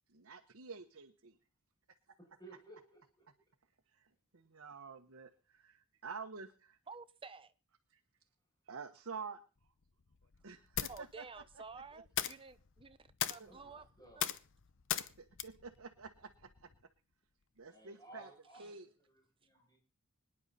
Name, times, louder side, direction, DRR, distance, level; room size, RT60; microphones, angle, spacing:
voice 1, 0.1-1.4 3.9-4.1 4.3-6.8 7.9-8.0 8.7-9.4 10.4-11.2 11.7-11.8 13.4-13.5 15.2-16.7 17.6-18.3 18.6-18.9, right 5 dB, 65° right, 1.1 m, -49 dB
voice 2, 2.2-3.2 13.4-14.2 17.7-19.8, right 1 dB, 20° left, 7.4 m, -58 dB
voice 3, 6.9-7.5 10.9-13.0 13.3-13.8 14.2-14.3, right 4 dB, 25° right, 0.9 m, -51 dB
sound 1, 9.6-16.8, left 10 dB, 60° left, 0.8 m, -42 dB
25.5 x 9.9 x 4.2 m
head